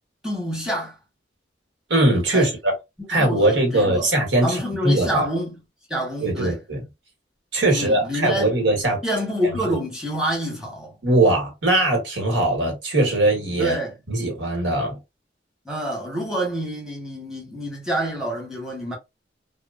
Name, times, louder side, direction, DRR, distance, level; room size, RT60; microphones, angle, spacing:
voice 1, 0.2-1.0 2.3-2.5 3.1-4.1 4.4-5.5 5.9-6.6 7.7-8.5 9.0-11.0 13.6-13.9 15.6-18.9, equal, 5° right, 0.9 m, -27 dB
voice 2, 1.9-2.7 3.1-5.3 6.2-6.8 7.5-9.0 9.7-9.8 11.0-13.8 14.1-15.0, right 1 dB, 80° right, 1.3 m, -20 dB
2.9 x 2.1 x 2.3 m
head